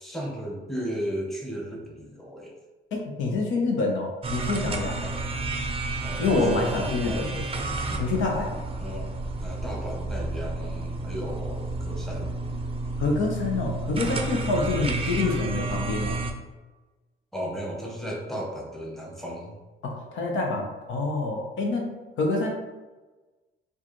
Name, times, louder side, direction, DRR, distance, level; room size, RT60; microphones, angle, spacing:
voice 1, 0.0-2.5 5.0-5.1 6.0-7.3 7.8-8.2 8.8-9.2 9.4-12.3 14.7-14.9 17.3-19.6, equal, ahead, -2 dB, 0.9 m, -35 dB
voice 2, 2.9-5.0 6.2-7.4 8.0-8.5 13.0-16.2 19.8-21.9 22.2-22.5, left 3 dB, 75° left, 0 dB, 0.8 m, -27 dB
sound 1, 4.2-16.3, right 2 dB, 30° right, 0.5 m, -31 dB
4.6 x 2.5 x 3.0 m, 1.2 s
cardioid pair, 90°, 20 cm